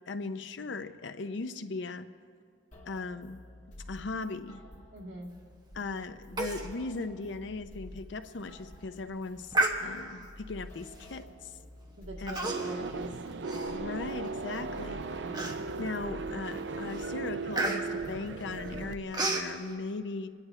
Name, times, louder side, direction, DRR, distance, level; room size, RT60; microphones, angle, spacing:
voice 1, 0.1-2.1 2.9-3.4 3.9-4.6 5.7-9.5 9.8-11.5 12.2-12.8 13.7-15.4 15.8-20.3, left 3 dB, 75° left, 10 dB, 0.6 m, -38 dB
sound 1, 2.7-19.0, left 1 dB, 40° left, 2.3 m, -51 dB
voice 2, 4.9-5.3 12.0-13.2 13.4-13.8 15.2-15.5, right 1 dB, 85° right, -3 dB, 2.0 m, -44 dB
Human voice, 6.4-6.7 7.0-7.1 7.6-7.7 8.3-8.6 9.5-10.2 11.0-11.2 12.3-12.9 13.2-14.3 14.8-14.9 15.3-15.9 16.4-16.6 16.9-19.5, right 2 dB, 25° right, 1.0 m, -32 dB
sound 2, 12.5-18.9, right 4 dB, 65° right, 0.5 m, -37 dB
28.5 x 9.9 x 3.3 m, 2.2 s
head